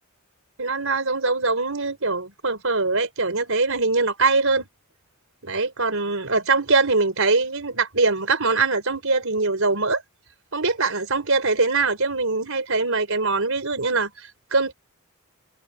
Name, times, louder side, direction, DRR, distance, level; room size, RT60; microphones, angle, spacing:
voice 1, 0.6-4.7 5.4-10.0 10.5-14.7, right 3 dB, 65° right, 5.2 m, -22 dB
head